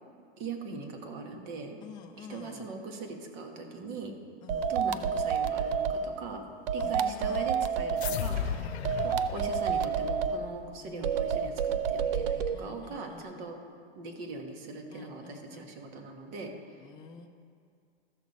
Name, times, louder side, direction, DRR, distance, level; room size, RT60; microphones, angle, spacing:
voice 1, 0.4-1.8 2.2-4.1 4.7-6.4 6.7-8.8 9.0-13.6 13.9-16.5, right 4 dB, 45° right, 3 dB, 1.5 m, -41 dB
voice 2, 1.8-2.7 4.4-4.8 6.8-7.5 8.8-9.2 10.8-11.3 12.5-13.6 14.9-15.7 16.8-17.3, left 6 dB, 15° left, 2 dB, 0.5 m, -48 dB
sound 1, 4.5-6.0 6.7-8.2 8.8-10.4 11.0-12.5, right 7 dB, 60° right, 0.6 m, -29 dB
sound 2, 8.0-10.7, left 9 dB, 85° left, 0.7 m, -36 dB
sound 3, 8.4-11.9 12.1-12.2, right 1 dB, 30° right, 1.9 m, -47 dB
14.5 x 6.6 x 4.2 m, 2.2 s
supercardioid pair, 145°, 32 cm